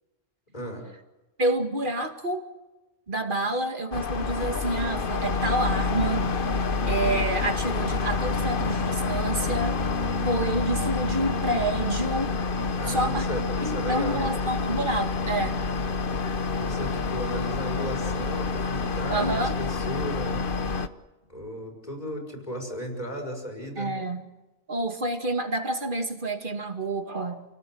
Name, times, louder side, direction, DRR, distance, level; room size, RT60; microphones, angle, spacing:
voice 1, 0.5-0.9 3.5-3.6 4.3-4.5 12.7-14.3 16.5-20.5 21.3-24.0, equal, 45° left, 2 dB, 6.0 m, -35 dB
voice 2, 1.4-2.4 3.1-6.2 6.9-9.8 10.2-12.3 12.9-13.3 13.6-15.5 19.1-19.6 23.8-24.3 24.7-27.4, right 2 dB, 55° right, 5 dB, 2.4 m, -28 dB
sound 1, 3.9-20.9, left 4 dB, 60° left, 1.1 m, -28 dB
29.5 x 18.0 x 7.8 m, 1.1 s
omnidirectional pair, 1.0 m